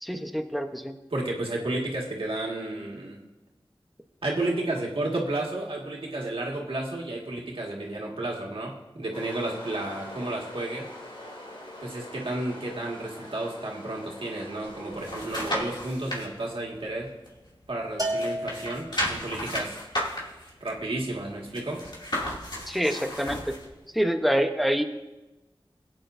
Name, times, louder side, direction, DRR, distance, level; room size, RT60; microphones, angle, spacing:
voice 1, 0.0-0.9 22.7-23.5 23.9-24.8, equal, ahead, 6 dB, 0.9 m, -26 dB
voice 2, 1.1-3.2 4.2-10.9 11.8-17.1 17.7-19.8 20.6-21.8, right 2 dB, 90° right, -2 dB, 1.8 m, -32 dB
sound 1, 9.1-15.6, left 1 dB, 80° left, 3.0 m, -43 dB
sound 2, 14.6-16.3 16.7-17.8 18.1-23.7 24.1-24.2, equal, 55° left, 2.5 m, -34 dB
Bell, 18.0-19.4, equal, 40° right, 1.6 m, -32 dB
18.0 x 9.0 x 2.6 m, 1.1 s
wide cardioid pair, 55°, 9 cm